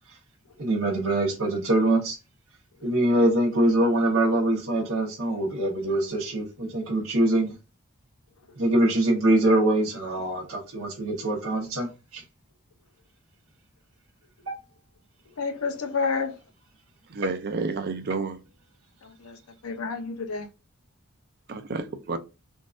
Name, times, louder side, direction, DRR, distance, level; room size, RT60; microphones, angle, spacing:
voice 1, 0.6-2.2 2.8-7.5 8.5-12.2, right 1 dB, 70° right, 1.1 m, -23 dB
voice 2, 15.4-16.4 19.0-20.5, left 4 dB, 80° left, 0.7 m, -30 dB
voice 3, 17.2-18.4 21.5-22.2, right 4 dB, 45° right, 0.5 m, -30 dB
3.8 x 2.5 x 2.4 m
head